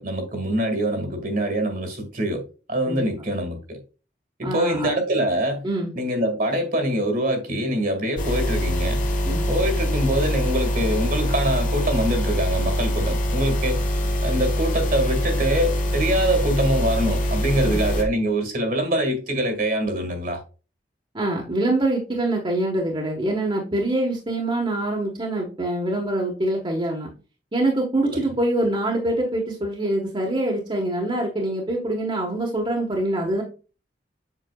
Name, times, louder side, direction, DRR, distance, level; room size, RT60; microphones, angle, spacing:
voice 1, 0.0-3.8 4.4-5.6 5.9-9.0 9.5-13.8 14.2-20.4 28.0-28.2, right 1 dB, 55° right, 1.9 m, -24 dB
voice 2, 4.4-4.9 5.6-5.9 9.2-9.4 17.6-17.8 21.1-27.1 27.5-33.4, right 1 dB, 30° right, 1.3 m, -24 dB
sound 1, 8.2-18.0, equal, 45° left, 1.3 m, -24 dB
7.7 x 5.9 x 2.3 m
head